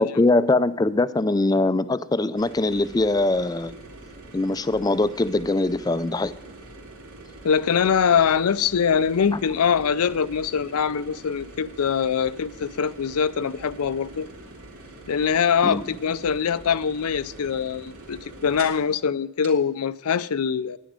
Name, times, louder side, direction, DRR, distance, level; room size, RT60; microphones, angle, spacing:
voice 1, 0.0-3.7 4.3-6.3 15.6-15.9, left 2 dB, 15° left, 0.3 m, -22 dB
sound 1, 2.4-18.9 19.4-19.5, right 2 dB, 80° right, 2.5 m, -44 dB
voice 2, 7.4-14.3 15.1-20.8, left 7 dB, 85° left, 0.5 m, -23 dB
10.5 x 10.5 x 5.1 m
head